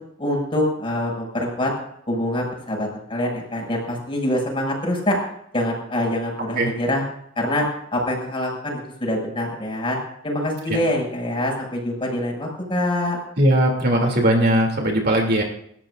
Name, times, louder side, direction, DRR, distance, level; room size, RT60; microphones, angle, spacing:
voice 1, 0.2-1.7 2.1-5.2 5.5-7.0 7.4-10.0 10.2-13.2, left 1 dB, 25° left, -1 dB, 6.9 m, -25 dB
voice 2, 13.4-15.4, right 1 dB, 55° right, 0 dB, 3.0 m, -19 dB
29.5 x 14.0 x 2.6 m, 0.71 s
head